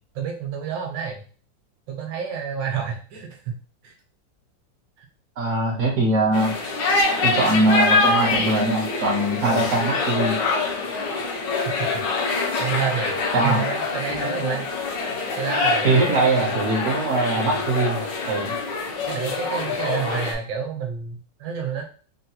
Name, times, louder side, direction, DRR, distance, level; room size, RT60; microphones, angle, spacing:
voice 1, 0.1-1.2 1.9-3.6 3.8-3.9 5.0-5.1 9.4-9.7 11.5-12.0 12.6-14.7 15.4-16.5 17.3-17.6 19.0-21.8, right 7 dB, 80° right, 2 dB, 1.5 m, -29 dB
voice 2, 5.4-6.5 7.2-10.4 13.3-13.6 15.8-18.5, right 2 dB, 60° right, -2 dB, 0.8 m, -22 dB
sound 1, 6.3-20.3, left 3 dB, 75° left, 1.4 m, -25 dB
3.8 x 2.2 x 2.8 m, 0.40 s
omnidirectional pair, 2.0 m